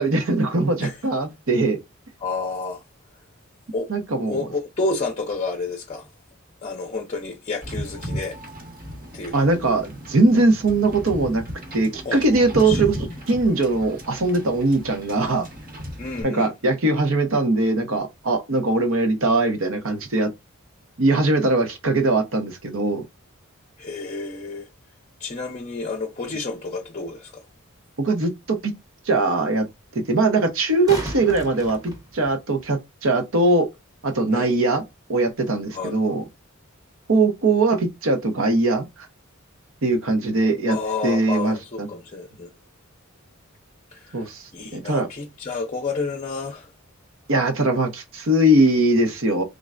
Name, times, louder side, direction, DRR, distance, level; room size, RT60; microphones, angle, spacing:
voice 1, 0.0-1.8 3.9-4.4 9.3-11.4 11.7-13.0 13.3-15.5 16.2-20.3 21.0-23.0 28.0-28.7 29.1-29.7 29.9-33.7 34.0-34.8 35.1-36.2 37.1-38.9 39.8-40.8 41.0-41.9 44.1-44.4 44.7-45.1 47.3-49.4, right 2 dB, 70° right, 0.8 m, -21 dB
voice 2, 2.2-2.8 3.7-3.9 4.3-6.1 6.6-8.4 9.1-9.3 12.0-12.2 12.6-13.1 16.0-16.5 23.8-24.7 25.2-27.4 34.3-34.5 35.7-36.0 40.7-42.5 43.9-46.7, left 3 dB, 30° left, 0.5 m, -30 dB
Wind / Boat Water vehicle, 7.6-16.2, equal, 40° right, 1.0 m, -35 dB
sound 1, 27.7-27.8 30.5-32.7 35.5-35.6, right 1 dB, 15° right, 0.9 m, -35 dB
3.7 x 3.2 x 2.4 m
head